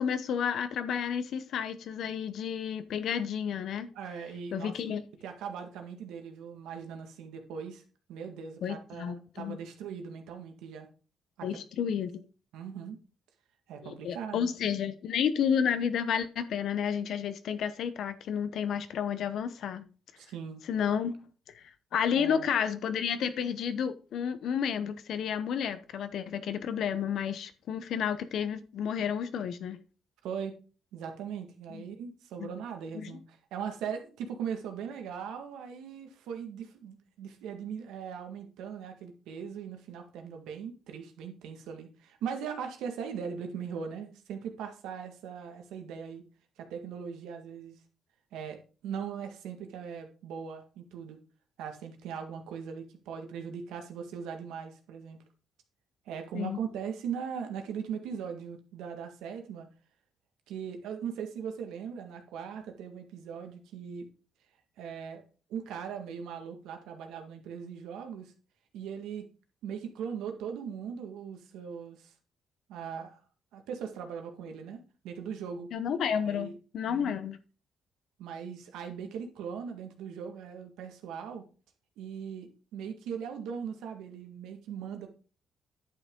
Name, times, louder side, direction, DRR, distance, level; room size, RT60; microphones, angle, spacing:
voice 1, 0.0-3.9 4.5-5.0 8.6-9.6 11.4-12.2 13.8-19.9 20.7-21.2 21.5-21.6 21.9-29.8 31.7-31.8 32.4-32.5 32.9-33.2 56.3-56.6 75.7-77.4, left 8 dB, 70° left, 0.8 m, -31 dB
voice 2, 3.9-4.7 5.2-7.8 8.1-10.9 11.4-11.5 12.0-12.1 12.5-13.0 13.7-14.5 20.2-20.6 22.1-22.5 30.2-30.6 30.9-46.2 46.6-47.8 48.3-51.2 51.6-55.2 56.0-59.7 60.5-64.1 64.8-65.2 65.5-68.3 68.7-69.3 69.6-72.1 72.7-73.2 73.5-74.8 75.0-75.7 76.2-76.6 76.9-77.1 78.2-81.5 82.0-85.1, right 7 dB, 90° right, 1.8 m, -39 dB
10.5 x 6.2 x 3.7 m
cardioid pair, 90°, 0 cm